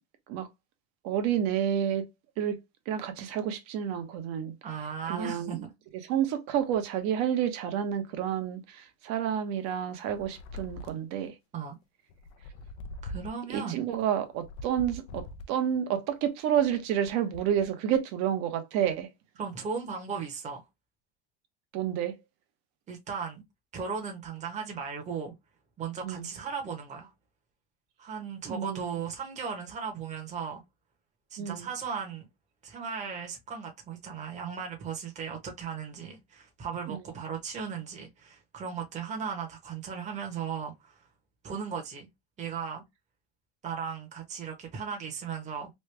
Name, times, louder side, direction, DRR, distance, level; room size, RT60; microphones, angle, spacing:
voice 1, 1.0-2.1 2.4-2.6 2.9-4.5 5.1-5.7 6.0-11.3 13.5-19.1 21.7-22.2 26.0-26.3 28.4-28.9 31.4-31.7 36.9-37.0, right 9 dB, 55° right, 0.9 m, -29 dB
voice 2, 4.6-5.7 11.5-11.8 13.0-13.8 19.4-20.6 22.9-23.4 23.7-25.3 25.8-27.1 28.0-30.6 31.3-32.3 32.6-41.1 41.4-42.1 42.4-42.8 43.6-45.7, right 6 dB, 20° right, 1.0 m, -36 dB
sound 1, 10.1-11.2 12.1-13.6 14.3-15.7 16.5-17.7, left 2 dB, 75° left, 0.6 m, -42 dB
3.2 x 2.2 x 3.2 m
supercardioid pair, 130°, 33 cm